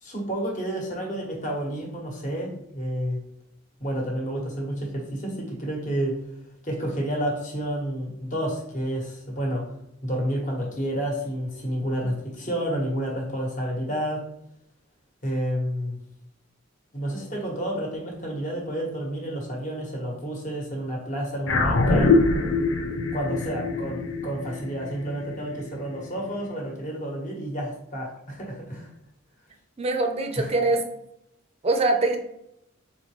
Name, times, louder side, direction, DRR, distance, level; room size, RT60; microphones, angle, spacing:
voice 1, 0.0-3.2 3.8-6.2 6.6-9.6 10.0-14.2 15.2-16.0 16.9-22.1 23.1-28.9 30.4-30.5, equal, 40° left, -1 dB, 1.2 m, -30 dB
sound 1, 21.5-26.1, left 3 dB, 70° left, 0.6 m, -24 dB
voice 2, 29.8-30.8 31.6-32.2, right 2 dB, 30° right, 5 dB, 0.6 m, -23 dB
4.0 x 3.9 x 3.1 m, 0.76 s
head